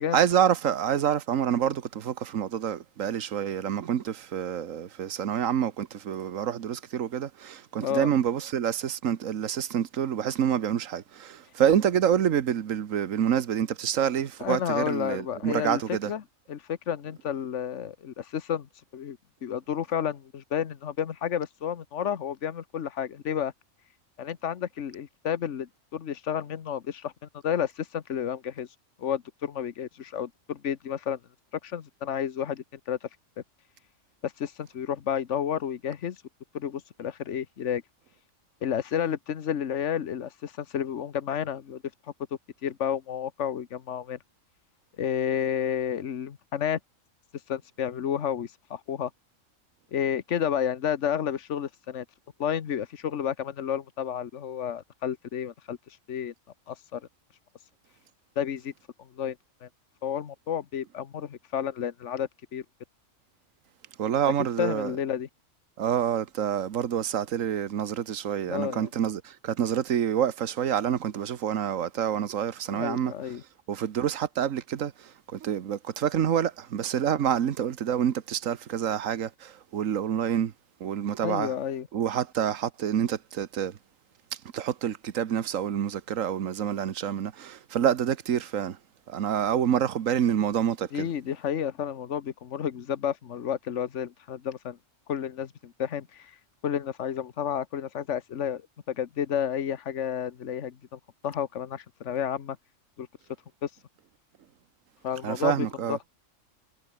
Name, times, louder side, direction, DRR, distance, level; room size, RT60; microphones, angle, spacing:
voice 1, 0.0-16.1 64.0-65.0 65.8-73.1 73.7-80.5 80.8-81.5 81.9-83.8 84.3-88.8 89.1-91.1 105.2-106.0, right 9 dB, 85° right, 1.4 m, -27 dB
voice 2, 14.4-15.8 16.1-16.2 16.5-18.7 18.9-23.5 24.2-27.1 27.4-28.7 29.0-31.2 31.6-33.0 34.2-36.2 36.5-37.8 38.6-41.8 42.6-44.2 45.0-46.8 47.5-49.1 49.9-52.0 52.4-55.8 56.1-56.3 56.7-57.0 58.4-58.7 59.1-59.4 59.6-59.7 60.0-62.6 64.6-65.3 68.5-68.9 72.7-73.4 81.2-81.9 90.9-94.8 95.1-96.3 96.6-98.6 98.9-102.6 103.0-103.1 103.6-103.7 105.0-106.1, left 9 dB, 65° left, 1.4 m, -31 dB
omnidirectional pair, 1.3 m